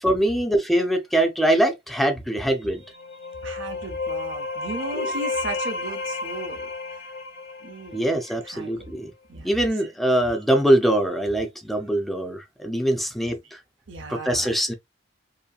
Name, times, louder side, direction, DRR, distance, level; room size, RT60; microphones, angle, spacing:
voice 1, 0.0-2.8 4.9-5.1 7.9-9.1 9.4-13.6 14.1-14.7, right 1 dB, ahead, 0.5 m, -23 dB
sound 1, 2.8-8.5, left 3 dB, 60° left, 0.8 m, -32 dB
voice 2, 3.4-6.7 7.6-8.2 8.4-8.7 9.3-9.5 13.9-14.6, right 2 dB, 70° right, 0.8 m, -35 dB
2.8 x 2.7 x 2.2 m
head